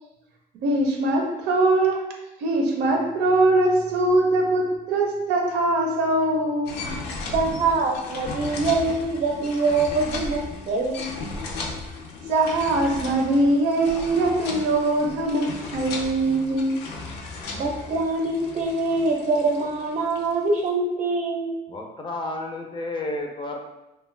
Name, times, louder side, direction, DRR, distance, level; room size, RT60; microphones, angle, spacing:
voice 1, 0.6-2.1 2.4-6.9 12.3-16.8, right 2 dB, 90° right, 1 dB, 0.6 m, -22 dB
sound 1, 6.7-20.6, left 3 dB, 75° left, 0.5 m, -36 dB
voice 2, 7.3-11.1 17.5-21.6, right 3 dB, 45° right, 2 dB, 0.6 m, -24 dB
voice 3, 21.7-23.6, left 2 dB, 30° left, 1 dB, 0.5 m, -31 dB
2.4 x 2.2 x 3.2 m, 0.94 s
cardioid pair, 110°, 17 cm